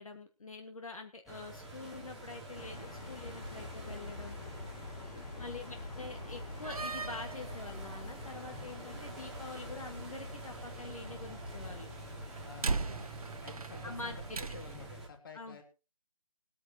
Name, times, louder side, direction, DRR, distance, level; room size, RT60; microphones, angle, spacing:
voice 1, 0.0-4.4 5.4-11.9 13.8-14.6 15.3-15.6, left 3 dB, 60° left, 5 dB, 1.9 m, -46 dB
sound 1, 1.3-15.1, right 2 dB, ahead, 0.9 m, -48 dB
sound 2, 2.6-12.5, left 3 dB, 75° left, 1.3 m, -47 dB
voice 2, 5.0-5.8 12.4-13.1 13.4-15.6, left 4 dB, 35° left, 5 dB, 2.7 m, -51 dB
Slam, 6.5-14.9, right 4 dB, 65° right, 1.0 m, -41 dB
21.0 x 9.4 x 3.0 m, 0.31 s
figure-of-eight pair, 170°, 20 cm